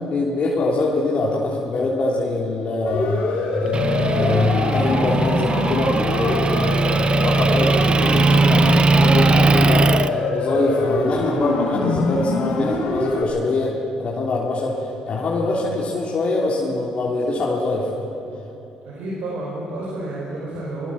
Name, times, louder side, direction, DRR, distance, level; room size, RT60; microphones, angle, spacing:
voice 1, 0.0-13.7 14.0-18.1, left 2 dB, 50° left, -4 dB, 3.4 m, -23 dB
Siren, 2.9-13.2, left 2 dB, 80° left, 4.6 m, -25 dB
Motor vehicle (road) / Engine, 3.7-10.1, right 3 dB, 40° right, 0.7 m, -19 dB
voice 2, 18.9-20.9, right 2 dB, 75° right, -4 dB, 5.4 m, -30 dB
22.0 x 20.5 x 7.4 m, 2.8 s
supercardioid pair, 70°, 3 cm